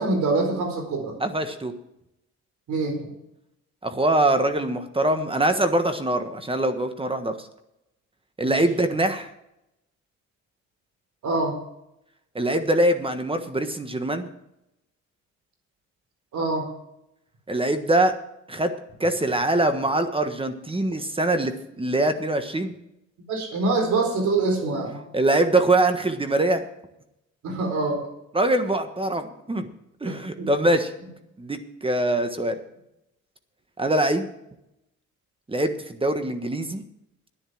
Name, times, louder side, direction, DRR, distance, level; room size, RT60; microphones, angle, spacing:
voice 1, 0.0-1.1 2.7-3.1 8.4-8.6 11.2-11.5 16.3-16.7 23.3-25.0 27.4-28.0 30.1-30.5, right 3 dB, 70° right, 3 dB, 4.2 m, -25 dB
voice 2, 1.2-1.7 3.8-7.3 8.4-9.3 12.3-14.3 17.5-18.1 18.5-18.7 19.0-22.7 25.1-26.6 28.3-29.7 30.0-30.9 31.4-32.6 33.8-34.3 35.5-36.8, right 1 dB, 20° right, 8 dB, 1.4 m, -23 dB
10.5 x 10.0 x 6.1 m, 0.82 s
cardioid pair, 90°, 30 cm